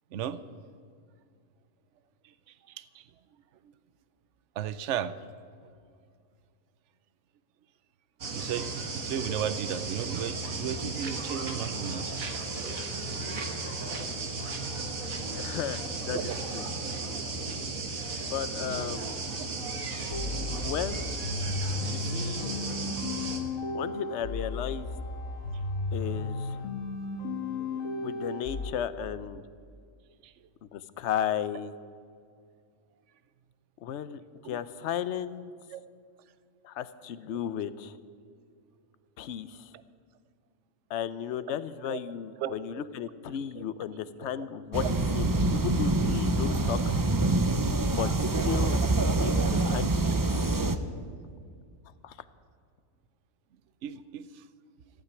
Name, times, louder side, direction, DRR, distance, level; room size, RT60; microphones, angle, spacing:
voice 1, 2.7-3.1 4.6-5.2 8.4-12.6 16.0-16.4 21.9-22.3 30.2-30.3 34.4-34.6 35.7-35.8 41.9-42.0 42.4-42.8 44.2-44.3 44.8-44.9 47.6-47.7 53.8-54.4, right 9 dB, 65° right, 15 dB, 0.9 m, -35 dB
sound 1, 8.2-23.4, right 3 dB, 80° right, 2.0 m, -35 dB
voice 2, 15.3-16.6 18.3-19.2 20.6-21.0 21.9-22.5 23.7-24.9 25.9-26.7 28.0-29.4 30.7-31.7 33.8-35.5 36.6-38.0 39.2-39.7 40.9-44.8 45.1-46.8 47.8-48.1 48.4-48.8 49.1-50.5 52.0-52.2, left 9 dB, 60° left, 14 dB, 0.9 m, -34 dB
sound 2, 20.1-28.7, left 3 dB, 80° left, 1.8 m, -34 dB
sound 3, 44.7-50.8, right 2 dB, 30° right, 0.4 m, -26 dB
15.0 x 9.0 x 9.7 m, 2.2 s
omnidirectional pair, 1.4 m